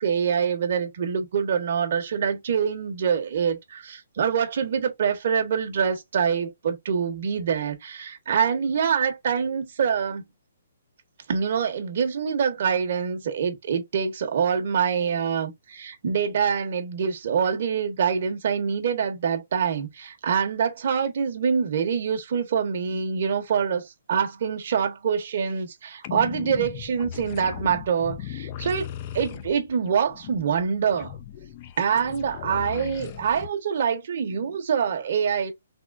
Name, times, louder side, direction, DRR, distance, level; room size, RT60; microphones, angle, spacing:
voice 1, 0.0-10.2 11.3-31.1 31.8-35.5, right 7 dB, 55° right, 1.1 m, -25 dB
sound 1, 26.0-33.5, left 11 dB, 35° left, 0.4 m, -37 dB
3.7 x 3.0 x 2.4 m
hypercardioid pair, 155°, 0 cm